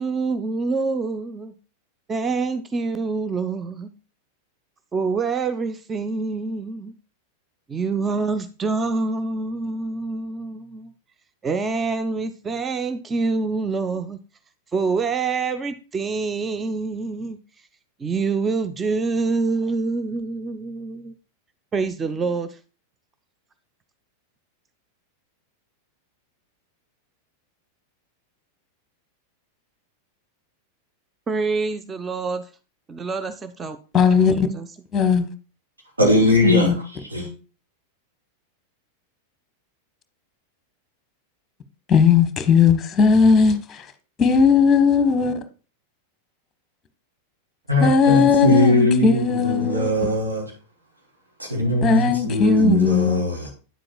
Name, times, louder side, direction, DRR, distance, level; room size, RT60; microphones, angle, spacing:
voice 1, 0.0-1.5 2.1-3.9 4.9-6.9 7.7-10.9 11.4-14.2 14.7-17.4 18.0-21.1 21.7-22.6 31.3-32.5 32.9-33.8 34.5-34.7, right 4 dB, 20° right, 0.5 m, -26 dB
voice 2, 33.9-34.5 34.9-35.2 36.4-36.7 41.9-43.8 44.2-45.3 47.8-49.9 51.8-53.2, left 6 dB, 20° left, 1.0 m, -17 dB
voice 3, 36.0-36.8 37.1-37.3 47.7-50.5 51.4-53.5, left 1 dB, 80° right, 2.9 m, -20 dB
9.2 x 7.6 x 2.3 m
figure-of-eight pair, 90°, 0 cm